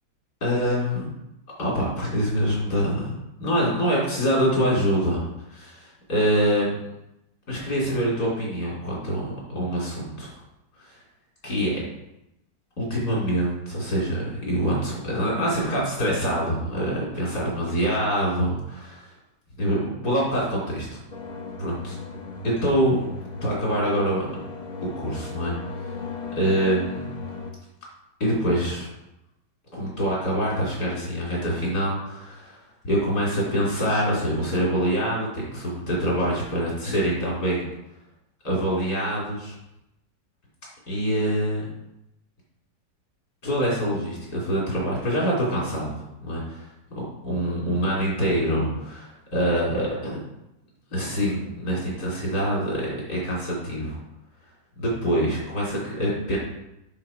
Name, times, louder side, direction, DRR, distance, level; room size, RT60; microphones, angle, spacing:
voice 1, 0.4-1.1 1.6-3.1 3.4-5.2 5.5-6.7 7.5-9.2 9.5-10.3 10.8-11.0 11.4-11.8 12.8-19.0 19.6-21.0 21.6-22.0 22.4-23.0 23.4-24.3 25.0-25.6 26.4-27.0 28.2-28.9 29.7-32.6 32.8-37.7 38.4-39.5 40.9-41.6 43.4-45.9 46.2-46.7 47.2-50.2 50.9-54.0 54.8-56.4, equal, 60° left, -5 dB, 4.3 m, -25 dB
sound 1, 21.1-27.5, left 4 dB, 30° left, 0.9 m, -36 dB
11.0 x 4.2 x 5.8 m, 0.87 s
omnidirectional pair, 1.9 m